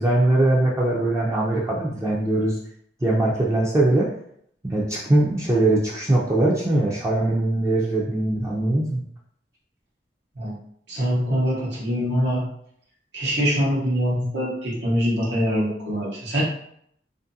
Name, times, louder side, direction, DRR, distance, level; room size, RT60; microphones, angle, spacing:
voice 1, 0.0-2.6 3.0-4.1 4.6-9.0, right 2 dB, 15° right, -5 dB, 0.4 m, -21 dB
voice 2, 10.9-12.4 13.1-16.4, equal, 75° right, -5 dB, 0.8 m, -23 dB
2.6 x 2.6 x 2.5 m, 0.68 s
head